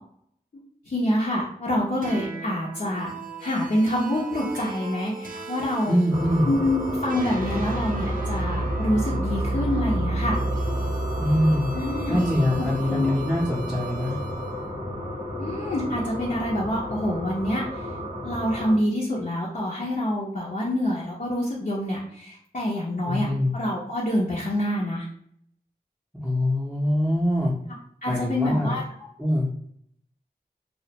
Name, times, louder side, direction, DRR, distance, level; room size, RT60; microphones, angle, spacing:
voice 1, 0.9-3.1 3.4-6.0 6.5-10.4 11.7-12.2 12.6-13.1 15.4-17.9 18.2-23.3 23.5-25.1 28.0-29.1, left 1 dB, 55° left, -6 dB, 0.6 m, -26 dB
sound 1, 2.0-14.5, right 2 dB, 60° right, 0.5 m, -32 dB
voice 2, 5.9-6.5 11.1-11.7 12.1-14.2 23.0-23.5 26.1-27.5 28.1-28.8 29.2-29.5, equal, 5° right, -6 dB, 0.6 m, -23 dB
sound 2, 6.1-18.8, left 1 dB, 80° left, 1.0 m, -33 dB
2.4 x 2.1 x 2.8 m, 0.66 s
wide cardioid pair, 45°, 16 cm